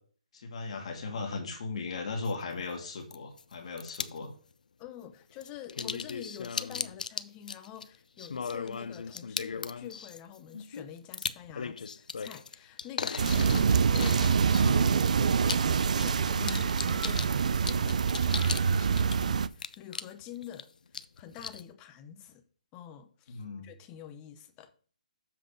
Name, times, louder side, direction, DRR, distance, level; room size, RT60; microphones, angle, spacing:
voice 1, 0.3-4.3 16.3-16.7 23.3-23.7, left 3 dB, 50° left, 1.8 m, -37 dB
sound 1, 2.2-2.3 3.1-3.4 3.8-4.2 5.4-18.7 19.0-20.6 20.9-21.6, left 5 dB, 85° left, 0.5 m, -37 dB
voice 2, 4.8-15.6 15.9-22.4 22.7-24.7, left 10 dB, 15° left, 0.6 m, -47 dB
sound 2, 13.2-19.5, right 6 dB, 65° right, 0.4 m, -25 dB
7.4 x 3.9 x 6.4 m
hypercardioid pair, 165°, 4 cm